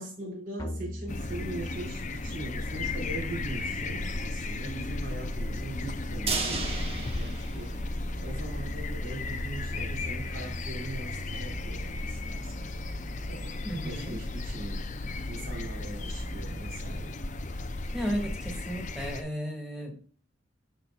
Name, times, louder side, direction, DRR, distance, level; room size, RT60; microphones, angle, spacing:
voice 1, 0.0-12.5 13.3-14.9 15.2-17.2, right 1 dB, 50° right, -5 dB, 3.9 m, -41 dB
sound 1, 0.6-18.6, equal, 20° left, 1.4 m, -41 dB
sound 2, 1.1-19.2, left 2 dB, 40° left, 0.6 m, -35 dB
sound 3, 6.3-8.4 8.7-8.8 9.2-9.3, right 3 dB, 30° right, 1.4 m, -34 dB
voice 2, 13.6-14.2 17.9-20.0, equal, ahead, 0 dB, 2.3 m, -34 dB
12.5 x 4.5 x 2.4 m, 0.43 s
head